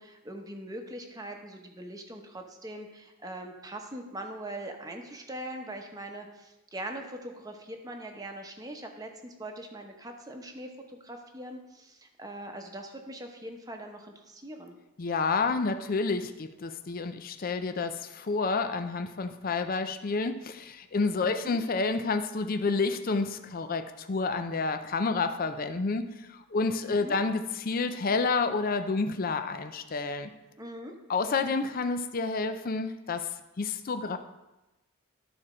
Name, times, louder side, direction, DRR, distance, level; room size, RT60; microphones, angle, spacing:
voice 1, 0.0-14.8 21.3-21.6 26.8-27.2 30.6-30.9, right 1 dB, 15° right, 3 dB, 0.9 m, -42 dB
voice 2, 15.0-30.3 31.1-33.3 33.6-34.2, left 4 dB, 40° left, 8 dB, 0.5 m, -29 dB
13.0 x 4.3 x 4.9 m, 1.0 s
head